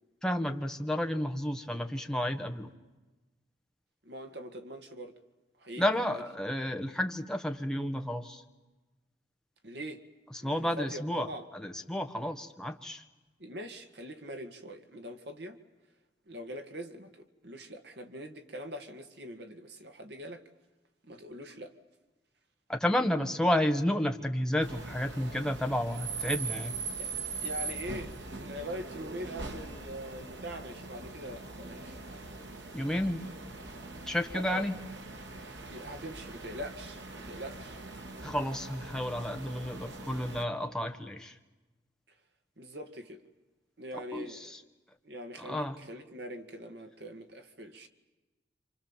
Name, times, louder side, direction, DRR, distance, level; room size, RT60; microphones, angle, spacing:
voice 1, 0.2-2.7 5.8-8.4 10.4-11.3 11.5-13.0 22.7-26.7 32.7-33.3 34.1-34.7 38.2-41.4 43.9-44.6 45.4-45.8, left 1 dB, 5° left, 1.5 m, -31 dB
voice 2, 4.0-5.2 5.6-5.8 6.1-6.2 9.6-10.0 10.4-11.5 13.4-15.6 16.3-20.4 21.0-21.7 27.0-27.1 27.4-28.1 28.4-32.0 34.3-34.7 35.7-37.8 42.6-43.2 43.8-44.6 45.0-47.9, equal, 65° right, 2.1 m, -42 dB
sound 1, 24.6-40.4, right 4 dB, 85° right, 2.5 m, -41 dB
28.0 x 27.0 x 7.4 m
head